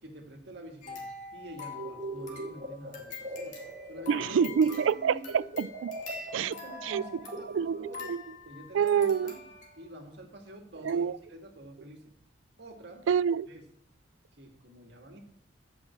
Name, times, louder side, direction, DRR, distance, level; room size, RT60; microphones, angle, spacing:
voice 1, 0.0-3.6 3.9-5.3 6.4-8.2 8.4-12.1 12.6-13.1 13.5-13.7 14.3-15.2, right 1 dB, 60° right, 1.9 m, -48 dB
sound 1, 0.8-10.0 10.5-10.6 10.9-11.0, left 4 dB, 40° left, 2.1 m, -45 dB
sound 2, 1.7-5.0 5.3-8.3, right 2 dB, 35° right, 1.7 m, -41 dB
voice 2, 4.1-6.0 6.3-6.5 6.8-7.0 7.6-7.8 8.1-8.2 8.7-9.3 10.9-11.1 13.1-13.5, right 7 dB, 85° right, 0.3 m, -26 dB
8.8 x 5.7 x 7.3 m
head